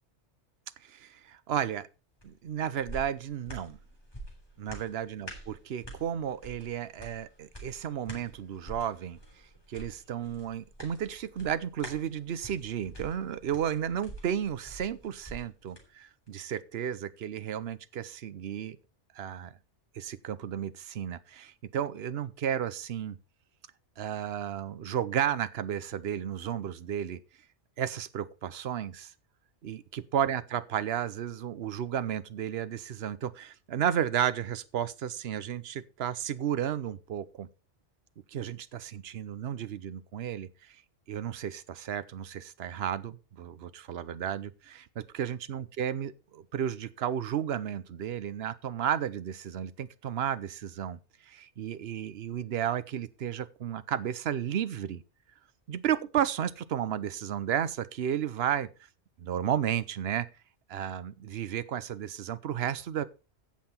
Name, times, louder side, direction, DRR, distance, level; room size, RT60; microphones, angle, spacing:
voice 1, 0.8-1.9 2.2-3.8 4.6-9.2 9.7-18.8 19.1-19.5 19.9-23.2 24.0-27.2 27.8-29.1 29.6-37.5 38.3-40.8 41.1-55.0 55.7-58.7 59.2-60.3 60.7-63.0, right 9 dB, 65° right, 1.0 m, -33 dB
sound 1, 2.2-15.9 16.3-16.4, right 1 dB, 20° left, 3.3 m, -47 dB
16.0 x 5.8 x 4.3 m
omnidirectional pair, 1.2 m